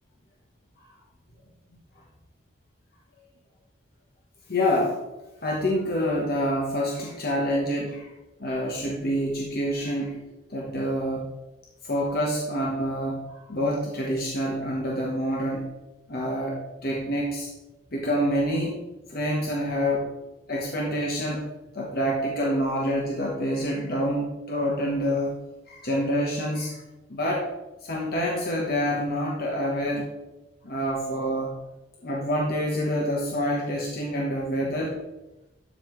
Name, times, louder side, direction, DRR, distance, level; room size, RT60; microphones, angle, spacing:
voice 1, 4.5-5.0 5.4-8.1 8.4-10.2 10.5-11.3 11.8-15.7 16.1-17.5 17.9-18.7 19.1-20.1 20.5-21.5 21.7-25.4 25.7-26.8 27.1-27.5 27.8-30.1 30.6-31.5 32.0-35.0, equal, 55° left, -2 dB, 1.2 m, -27 dB
12.0 x 5.6 x 3.2 m, 1.0 s
head